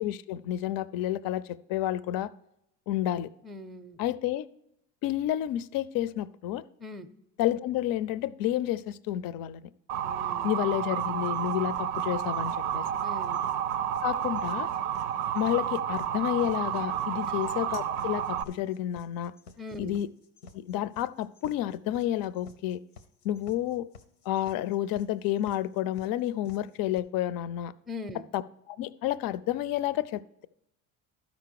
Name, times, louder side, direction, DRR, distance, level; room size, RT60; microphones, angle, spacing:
voice 1, 0.0-2.3 2.9-3.3 4.0-4.5 5.0-6.6 7.4-9.6 10.4-12.8 14.0-14.7 15.3-19.3 19.8-20.1 20.5-22.8 23.2-23.9 24.3-27.7 28.3-28.4 28.7-30.5, left 12 dB, 50° left, 18 dB, 0.5 m, -30 dB
voice 2, 3.4-4.0 6.8-7.1 10.0-10.5 13.0-13.5 17.2-17.3 19.6-20.0 27.9-28.3, left 2 dB, ahead, 9 dB, 0.5 m, -41 dB
Motor vehicle (road) / Siren, 9.9-18.4, right 9 dB, 90° right, 0.6 m, -31 dB
sound 1, 11.0-27.0, left 4 dB, 85° left, 0.8 m, -52 dB
12.0 x 5.2 x 4.7 m, 0.82 s
hypercardioid pair, 75°, 44 cm